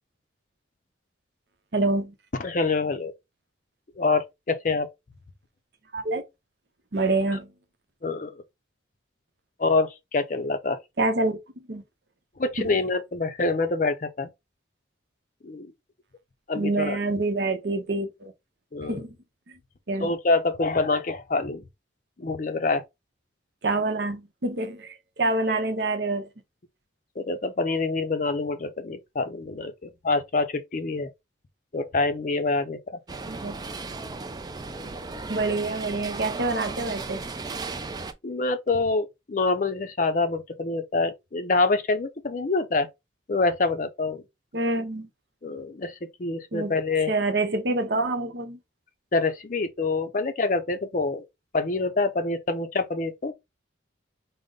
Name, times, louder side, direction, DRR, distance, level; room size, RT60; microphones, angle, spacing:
voice 1, 1.7-2.1 5.9-6.2 6.9-7.5 11.0-11.4 11.7-11.8 12.6-12.7 16.5-18.3 18.9-19.2 19.5-19.6 19.9-20.1 23.6-26.3 33.3-33.6 34.8-34.9 35.3-37.2 44.5-45.1 46.5-46.8 47.1-48.6, right 2 dB, 60° right, 0.7 m, -26 dB
voice 2, 2.4-3.1 4.0-4.9 8.0-8.4 9.6-10.8 12.4-14.3 15.4-15.7 16.5-17.0 18.7-19.0 20.0-21.6 22.2-22.8 27.2-31.1 31.7-33.0 38.2-42.9 43.3-44.2 45.4-47.1 49.1-51.2 51.5-53.3, left 3 dB, 45° left, 0.5 m, -26 dB
sound 1, 33.1-38.1, right 3 dB, 20° right, 0.3 m, -35 dB
5.1 x 2.1 x 3.7 m
head